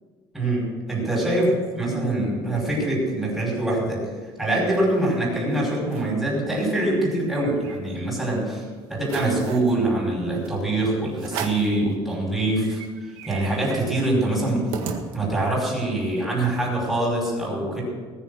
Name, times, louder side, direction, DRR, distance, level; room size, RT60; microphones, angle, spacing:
voice 1, 0.3-4.1 4.4-8.6 8.9-12.8 13.3-14.7 15.1-17.8, right 1 dB, 5° right, -5 dB, 5.4 m, -24 dB
sound 1, 4.2-5.1 5.5-5.6 5.8-6.2 6.6-8.2 8.6-8.7 9.0-9.7 10.4-10.6 11.2-11.8 12.2-12.3 12.5-15.6, right 6 dB, 85° right, 1.7 m, -36 dB
19.5 x 7.3 x 6.6 m, 1.4 s
cardioid pair, 165°, 9 cm